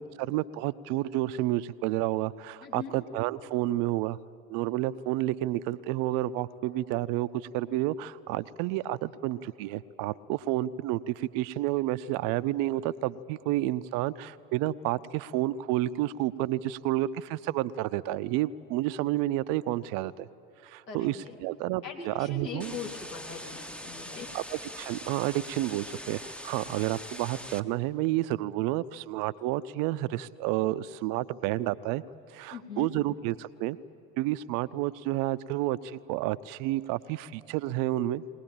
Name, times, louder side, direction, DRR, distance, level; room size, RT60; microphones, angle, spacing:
voice 1, 0.0-4.2 4.5-20.3 20.6-22.8 24.3-32.0 32.3-33.8 34.2-38.2, right 15 dB, 45° right, 16 dB, 0.6 m, -30 dB
voice 2, 2.6-2.9 20.9-21.4 21.8-24.3 32.5-32.9, left 6 dB, 80° left, 0 dB, 3.2 m, -40 dB
sound 1, 22.6-27.6, equal, ahead, 0.6 m, -42 dB
21.5 x 19.0 x 9.0 m, 2.5 s
figure-of-eight pair, 75°, 49 cm